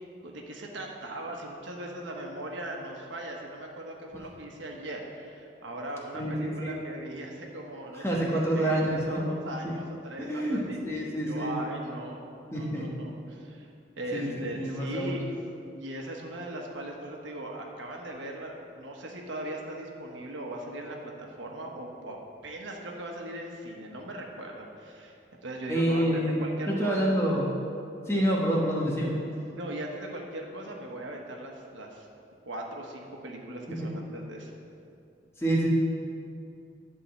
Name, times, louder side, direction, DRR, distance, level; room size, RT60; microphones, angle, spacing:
voice 1, 0.0-10.8 11.2-12.2 12.5-13.7 14.0-15.3 15.7-25.2 25.4-27.2 29.5-32.1 32.4-34.5, right 1 dB, 80° right, 0 dB, 1.2 m, -39 dB
voice 2, 6.1-6.7 8.0-9.3 10.2-11.5 12.5-12.9 14.1-15.2 25.7-26.4 26.7-27.5 28.1-29.1 33.8-33.9 35.4-35.7, right 1 dB, 15° left, -3 dB, 1.2 m, -27 dB
11.0 x 3.8 x 7.3 m, 2.5 s
head